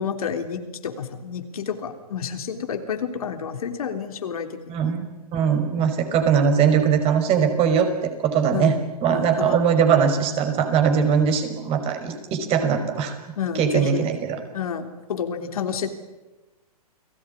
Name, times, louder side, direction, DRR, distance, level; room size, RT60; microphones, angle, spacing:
voice 1, 0.0-4.9 8.5-9.6 13.4-14.1 14.5-15.9, left 7 dB, 65° left, 6 dB, 3.5 m, -30 dB
voice 2, 4.7-7.9 8.2-8.7 9.0-13.2 13.6-14.4, right 7 dB, 30° right, 7 dB, 5.3 m, -21 dB
30.0 x 20.5 x 9.9 m, 1.1 s
figure-of-eight pair, 120°, 20 cm